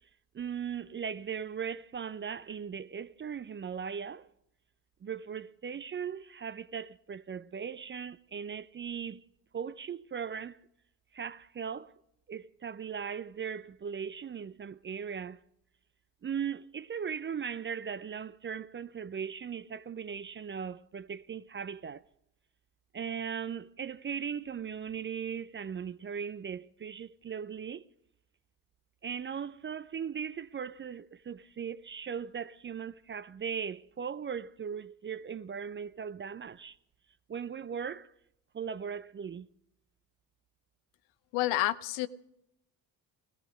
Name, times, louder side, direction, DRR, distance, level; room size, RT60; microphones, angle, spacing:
voice 1, 0.3-4.3 5.0-9.2 9.5-10.6 11.1-11.9 12.3-15.4 16.2-22.0 22.9-27.9 29.0-36.8 37.3-38.1 38.5-39.5, right 7 dB, 25° right, 0.5 m, -38 dB
voice 2, 41.3-42.1, left 16 dB, 70° left, 0.8 m, -29 dB
17.5 x 15.0 x 5.1 m
hypercardioid pair, 50°, 49 cm